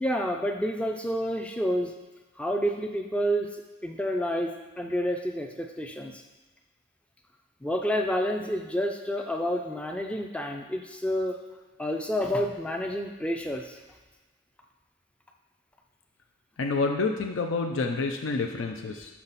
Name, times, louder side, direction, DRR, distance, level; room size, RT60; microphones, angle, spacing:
voice 1, 0.0-2.0 2.4-6.2 7.6-11.4 11.8-13.8, equal, 5° left, 3 dB, 0.4 m, -29 dB
voice 2, 16.6-19.1, left 3 dB, 80° left, 3 dB, 0.5 m, -28 dB
6.1 x 5.8 x 4.0 m, 1.2 s
head